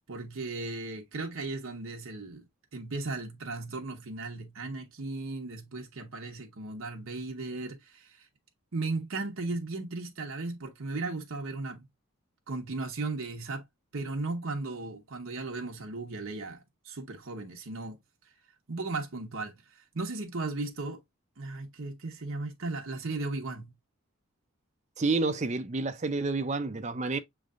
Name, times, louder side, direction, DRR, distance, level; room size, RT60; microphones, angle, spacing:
voice 1, 0.1-8.3 8.7-11.8 12.5-13.6 13.9-18.0 18.7-21.0 21.4-23.7, right 3 dB, 65° right, 0.9 m, -36 dB
voice 2, 25.0-27.2, right 3 dB, 30° right, 0.5 m, -29 dB
6.4 x 3.2 x 2.4 m
head